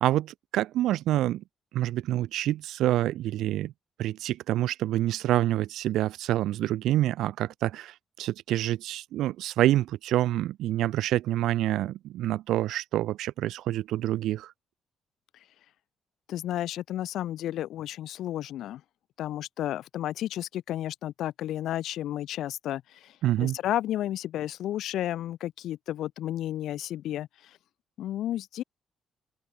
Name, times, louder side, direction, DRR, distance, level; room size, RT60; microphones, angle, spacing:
voice 1, 0.0-1.4 1.7-3.7 4.0-14.5 23.2-23.6, right 14 dB, 85° right, 1.0 m, -27 dB
voice 2, 16.3-18.8 19.2-27.6 28.0-28.6, left 12 dB, 80° left, 1.8 m, -32 dB
cardioid pair, 90°, 0 cm